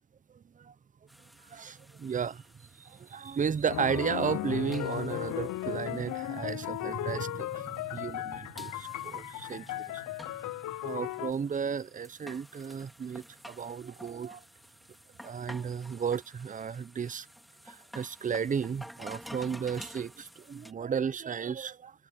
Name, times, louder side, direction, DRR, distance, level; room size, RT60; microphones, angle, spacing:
sound 1, 1.1-20.7, equal, ahead, 2.1 m, -52 dB
voice 1, 1.5-2.4 2.8-9.8 10.8-14.4 15.2-17.3 17.7-21.9, right 7 dB, 30° right, 0.5 m, -34 dB
sound 2, 3.7-11.3, left 15 dB, 80° left, 0.5 m, -36 dB
wide cardioid pair, 150°, 29 cm